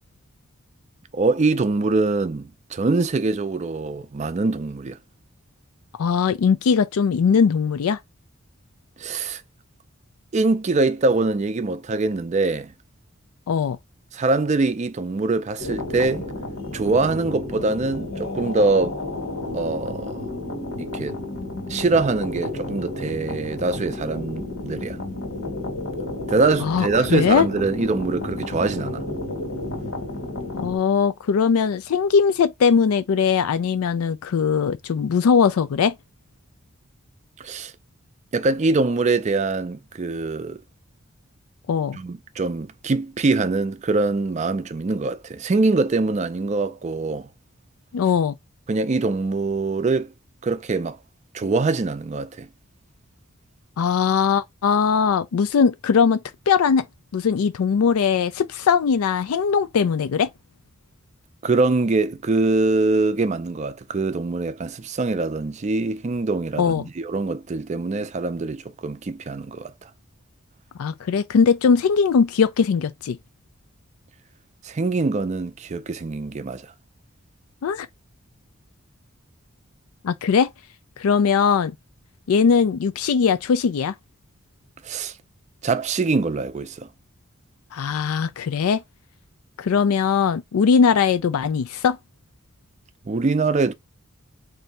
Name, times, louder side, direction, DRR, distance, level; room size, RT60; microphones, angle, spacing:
voice 1, 1.1-5.0 9.0-9.4 10.3-12.7 14.1-16.3 16.7-19.0 19.5-20.2 20.8-21.2 21.7-25.0 26.3-29.0 37.4-37.7 38.3-40.6 41.9-47.3 48.7-50.1 50.4-51.0 51.3-52.5 61.4-69.7 74.6-76.7 84.8-85.1 85.6-86.9 93.1-93.7, right 3 dB, 30° right, 0.4 m, -23 dB
voice 2, 6.0-8.0 13.5-13.8 26.6-27.5 30.5-35.9 41.7-42.0 47.9-48.3 53.8-56.2 56.5-56.9 57.1-60.3 66.6-66.8 70.8-73.2 77.6-77.9 80.0-80.5 81.0-81.7 82.3-83.9 87.7-88.8 89.6-92.0, left 6 dB, 90° left, 0.4 m, -20 dB
sound 1, 15.6-30.8, left 2 dB, 70° left, 1.5 m, -31 dB
3.2 x 2.7 x 4.0 m
head